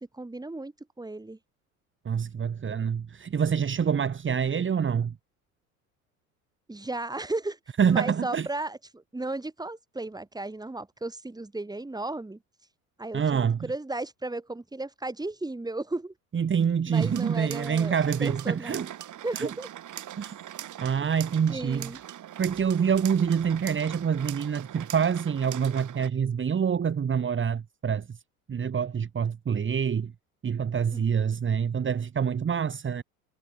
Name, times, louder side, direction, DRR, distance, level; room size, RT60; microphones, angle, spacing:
voice 1, 0.0-1.4 6.7-7.6 7.9-12.4 13.0-16.1 16.9-17.9 18.2-18.8 19.2-19.7 21.5-22.0 30.9-31.1, right 2 dB, 10° right, 4.4 m, -35 dB
voice 2, 2.0-5.1 7.8-8.5 13.1-13.6 16.3-18.9 19.4-19.5 20.2-20.4 20.8-21.9 22.4-28.1 28.5-30.1 30.4-33.0, right 7 dB, 25° right, 2.8 m, -26 dB
sound 1, 16.9-26.1, right 12 dB, 40° right, 5.3 m, -42 dB
figure-of-eight pair, 70°, 44 cm